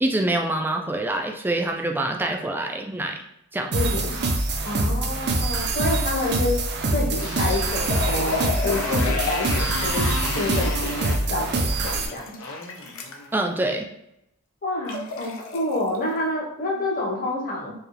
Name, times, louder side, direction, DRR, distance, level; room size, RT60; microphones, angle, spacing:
voice 1, 0.0-3.2 3.5-3.8 13.3-13.9, right 1 dB, 10° right, 3 dB, 0.3 m, -25 dB
voice 2, 3.7-4.2 4.6-6.6 6.9-12.3 14.6-17.7, left 2 dB, 40° left, -3 dB, 1.1 m, -28 dB
sound 1, 3.7-12.1, right 2 dB, 50° right, 0.6 m, -25 dB
Motorcycle, 6.9-13.4, left 2 dB, 90° left, 1.0 m, -32 dB
sound 2, 7.8-9.9 11.7-13.3 14.9-16.0, left 5 dB, 65° left, 0.7 m, -32 dB
4.6 x 2.3 x 3.2 m, 0.79 s
head